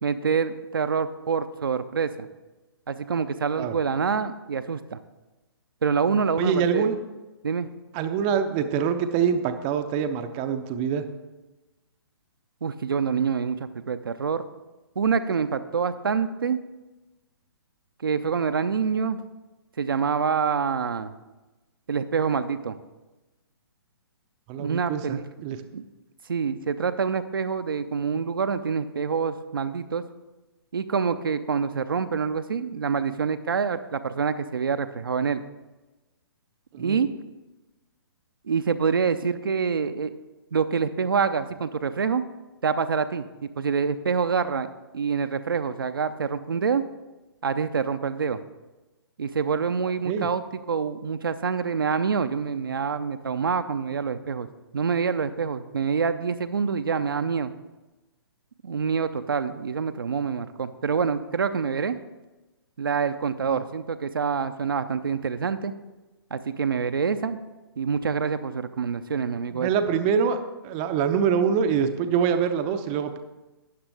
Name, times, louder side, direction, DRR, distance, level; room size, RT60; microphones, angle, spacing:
voice 1, 0.0-2.3 2.9-5.0 5.8-6.9 7.4-7.7 12.6-14.5 15.0-16.6 18.0-19.2 19.8-21.1 21.9-22.8 24.6-25.2 25.5-25.8 26.3-30.0 30.7-35.4 36.8-37.1 38.4-40.1 40.5-42.2 42.6-44.7 44.9-46.8 47.4-48.4 49.2-50.4 50.7-54.5 54.7-57.5 58.6-62.0 62.8-65.7 66.3-67.4 67.8-69.7, right 6 dB, 60° right, 10 dB, 0.6 m, -26 dB
voice 2, 6.3-7.0 7.9-11.1 24.5-25.6 36.7-37.0 50.1-50.3 63.5-63.6 69.5-70.4 70.6-73.2, right 7 dB, 25° right, 8 dB, 0.6 m, -25 dB
12.5 x 9.5 x 3.4 m, 1.1 s
figure-of-eight pair, 125°, 13 cm